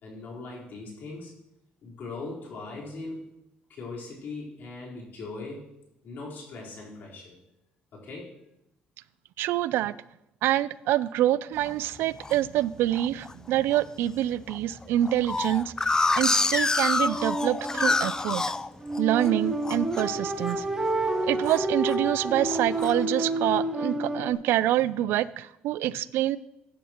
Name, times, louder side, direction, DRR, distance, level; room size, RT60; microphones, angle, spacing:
voice 1, 0.0-1.3 1.8-3.2 3.7-5.7 6.0-7.4 7.9-8.4, left 3 dB, 60° left, -4 dB, 4.0 m, -39 dB
voice 2, 9.4-9.9 10.4-18.4 19.0-20.7 21.2-26.4, right 13 dB, 80° right, 18 dB, 0.4 m, -26 dB
sound 1, 11.7-12.4 12.9-13.3 13.7-13.8 14.1-14.2 14.5-19.3 19.6-20.1 20.4-20.7 21.0-22.0 22.5-22.9, left 3 dB, 15° left, 0.3 m, -27 dB
sound 2, 17.0-24.3, right 1 dB, 20° right, 1.9 m, -30 dB
15.5 x 10.0 x 3.0 m, 0.85 s
cardioid pair, 100°, 4 cm